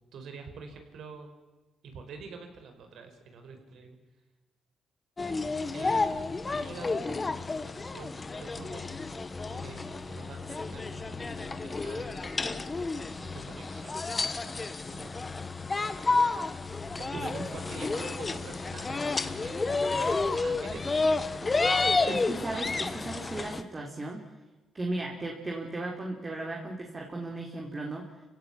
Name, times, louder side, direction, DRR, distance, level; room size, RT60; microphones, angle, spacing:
voice 1, 0.1-1.3 1.8-4.0 5.7-7.4 7.7-8.8 9.4-12.6 13.1-14.2 14.7-15.1 17.0-22.1, right 4 dB, 70° right, 6 dB, 5.1 m, -46 dB
sound 1, 5.2-23.6, left 3 dB, 25° left, 1.5 m, -31 dB
voice 2, 17.1-17.5 22.0-24.3 24.7-28.1, right 2 dB, 25° right, 1 dB, 3.7 m, -36 dB
29.5 x 16.5 x 8.9 m, 1.1 s
cardioid pair, 90°, 0 cm